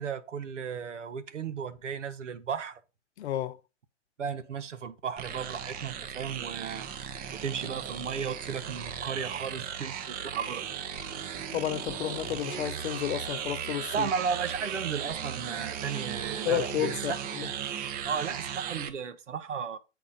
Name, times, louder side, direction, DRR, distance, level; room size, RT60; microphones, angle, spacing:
voice 1, 0.0-2.8 4.2-6.9 7.3-10.7 13.9-16.9 18.0-19.8, right 6 dB, 80° right, 0.9 m, -35 dB
voice 2, 3.2-3.6 11.5-14.1 16.5-17.5, left 12 dB, 60° left, 0.7 m, -31 dB
sound 1, 5.2-18.9, right 8 dB, 25° right, 0.6 m, -37 dB
8.1 x 4.2 x 4.1 m
hypercardioid pair, 110°, 36 cm